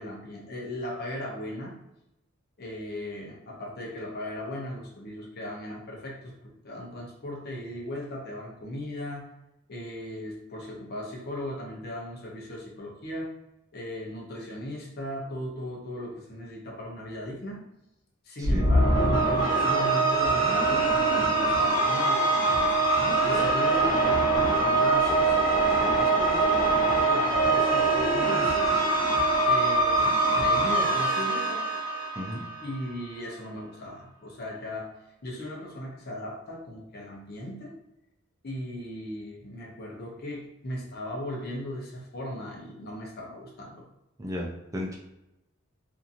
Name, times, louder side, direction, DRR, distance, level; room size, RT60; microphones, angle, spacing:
voice 1, 0.0-1.8 2.6-9.3 9.7-13.4 13.7-17.6 18.2-22.8 23.0-28.6 29.4-31.7 32.6-34.9 35.2-37.7 38.4-43.9, left 1 dB, 50° left, -1 dB, 0.7 m, -37 dB
sound 1, 18.4-32.8, right 2 dB, 80° left, 1.4 m, -23 dB
voice 2, 44.2-44.9, left 1 dB, 15° right, -2 dB, 0.4 m, -34 dB
2.8 x 2.6 x 2.5 m, 0.89 s
head